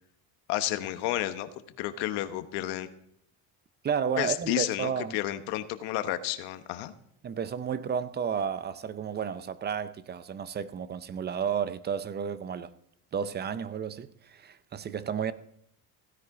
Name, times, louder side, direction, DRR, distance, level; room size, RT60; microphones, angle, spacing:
voice 1, 0.5-1.5 1.8-2.9 4.2-6.9, left 14 dB, 80° left, 1.1 m, -31 dB
voice 2, 3.8-5.2 7.2-12.7 13.1-15.3, right 7 dB, 25° right, 0.5 m, -32 dB
16.0 x 10.5 x 3.8 m
cardioid pair, 130°, 41 cm